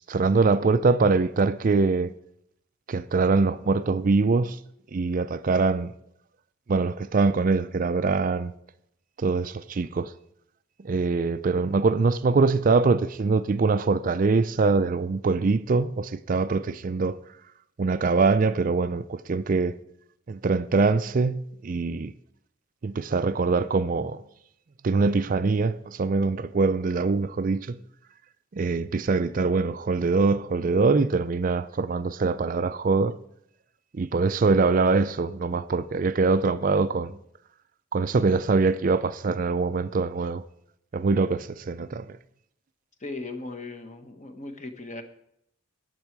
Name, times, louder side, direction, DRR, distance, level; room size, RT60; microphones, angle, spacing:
voice 1, 0.1-2.1 2.9-4.6 4.9-5.9 6.7-8.5 9.2-10.1 10.8-17.2 17.8-19.7 20.3-22.1 22.8-24.2 24.8-27.8 28.5-33.2 33.9-37.2 37.9-40.4 40.9-42.1, right 4 dB, 40° right, 0.4 m, -23 dB
voice 2, 43.0-45.0, left 2 dB, 35° left, 1.3 m, -37 dB
14.0 x 9.9 x 4.6 m
head